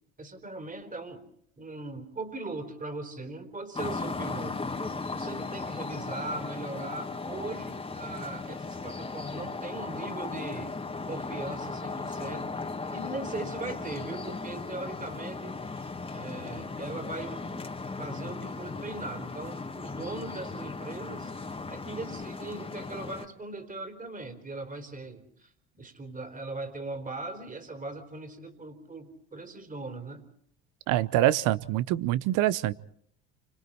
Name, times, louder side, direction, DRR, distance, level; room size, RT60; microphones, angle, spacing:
voice 1, 0.2-1.2 1.6-4.6 4.9-10.7 11.1-12.5 12.9-17.6 18.0-21.3 21.7-30.3, right 2 dB, 25° right, 8 dB, 4.1 m, -39 dB
sound 1, 3.7-23.3, left 3 dB, 15° left, 2.1 m, -37 dB
voice 2, 30.9-32.7, right 14 dB, 65° right, 17 dB, 0.9 m, -25 dB
29.5 x 25.5 x 4.4 m, 0.66 s
hypercardioid pair, 75°, 33 cm